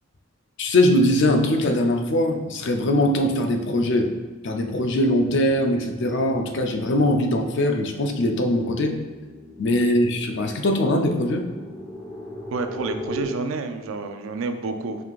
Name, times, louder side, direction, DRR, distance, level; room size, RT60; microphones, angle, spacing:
voice 1, 0.6-4.1 4.4-9.0 9.6-11.4, left 1 dB, 60° left, 4 dB, 0.5 m, -21 dB
sound 1, 4.4-13.3, left 1 dB, 5° left, 1.0 m, -40 dB
voice 2, 12.5-15.0, right 3 dB, 75° right, 7 dB, 0.4 m, -29 dB
4.8 x 3.7 x 2.4 m, 1.3 s
head